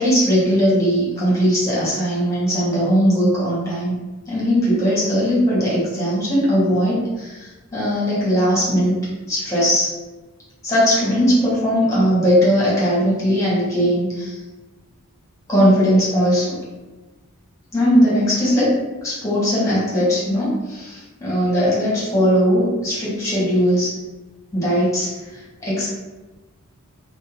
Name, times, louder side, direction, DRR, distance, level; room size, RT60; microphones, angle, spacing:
voice 1, 0.0-4.0 4.3-9.0 9.3-9.9 10.6-14.4 15.5-16.6 17.7-18.7 19.0-23.9 24.5-25.1 25.6-25.9, equal, 15° left, -8 dB, 1.1 m, -19 dB
2.6 x 2.1 x 2.8 m, 1.2 s
head